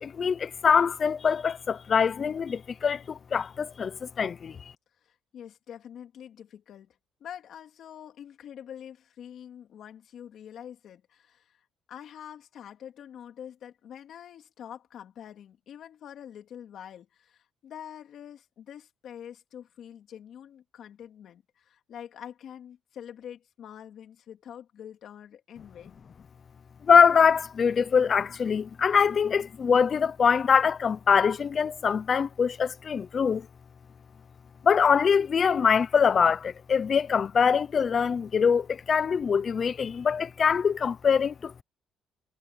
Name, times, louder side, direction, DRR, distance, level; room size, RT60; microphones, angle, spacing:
voice 1, 0.0-4.6 26.8-33.5 34.6-41.6, left 6 dB, 30° left, 0.5 m, -23 dB
voice 2, 5.0-25.9, left 9 dB, 50° left, 3.5 m, -45 dB
cardioid pair, 170°, 0 cm